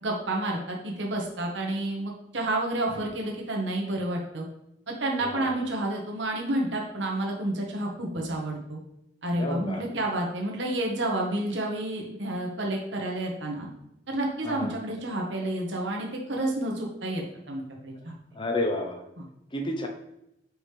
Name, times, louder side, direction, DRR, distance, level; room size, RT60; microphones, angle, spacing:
voice 1, 0.0-4.5 4.9-8.8 9.2-13.7 14.1-18.2 19.2-19.3, right 1 dB, 75° right, -1 dB, 1.2 m, -30 dB
voice 2, 5.2-5.5 9.4-9.8 14.4-14.8 18.3-19.0 19.5-19.9, left 1 dB, 25° left, 3 dB, 0.8 m, -30 dB
6.3 x 5.0 x 3.3 m, 0.83 s
head